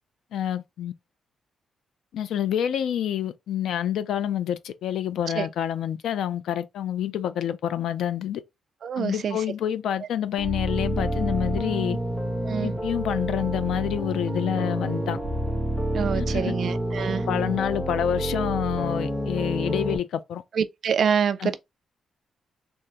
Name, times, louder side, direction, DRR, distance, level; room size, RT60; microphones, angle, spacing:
voice 1, 0.3-0.9 2.1-8.4 9.0-12.0 12.6-15.2 16.1-16.5 17.3-20.4 21.4-21.5, left 10 dB, 80° left, 0.4 m, -28 dB
voice 2, 8.8-9.4 12.4-12.8 15.9-17.3 20.5-21.6, right 7 dB, 45° right, 0.3 m, -26 dB
sound 1, 10.4-20.0, equal, 5° left, 0.6 m, -28 dB
3.5 x 2.0 x 2.8 m
wide cardioid pair, 175°, 0 cm